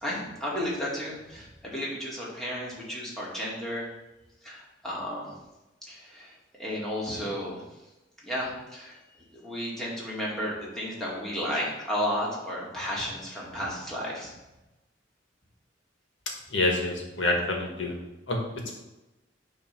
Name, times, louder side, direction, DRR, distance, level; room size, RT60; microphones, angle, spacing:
voice 1, 0.0-3.9 4.4-5.3 5.8-7.6 8.2-9.0 9.3-14.3, equal, ahead, -6 dB, 2.1 m, -33 dB
voice 2, 16.5-17.9 18.3-18.4, left 2 dB, 85° left, 1 dB, 1.6 m, -26 dB
9.0 x 3.2 x 6.0 m, 1.0 s
head